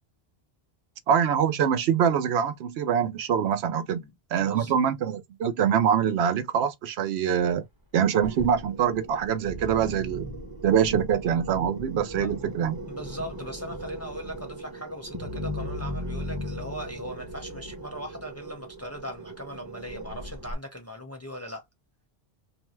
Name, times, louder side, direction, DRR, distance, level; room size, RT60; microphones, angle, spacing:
voice 1, 1.1-4.0 4.3-7.6 7.9-10.3 10.6-12.8, right 8 dB, 85° right, 0.8 m, -24 dB
voice 2, 4.0-4.7 12.2-12.3 12.9-21.6, equal, 15° left, 0.7 m, -39 dB
sound 1, 8.2-20.5, equal, 25° right, 0.8 m, -38 dB
2.6 x 2.2 x 3.0 m
omnidirectional pair, 1.1 m